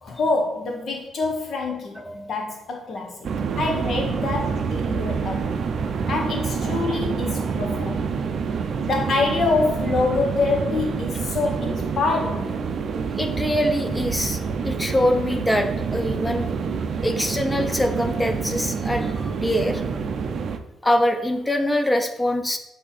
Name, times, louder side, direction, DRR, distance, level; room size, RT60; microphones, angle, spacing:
voice 1, 0.0-3.3 3.5-5.6 6.1-8.1 8.8-12.6, left 3 dB, 50° left, 1 dB, 0.8 m, -26 dB
voice 2, 2.0-2.3 13.2-14.4 14.6-16.5 17.0-19.8 20.8-22.6, left 1 dB, 10° left, 6 dB, 0.6 m, -23 dB
sound 1, 3.2-20.6, right 5 dB, 50° right, 0.5 m, -27 dB
8.4 x 2.8 x 4.1 m, 0.83 s
cardioid pair, 140°, 0 cm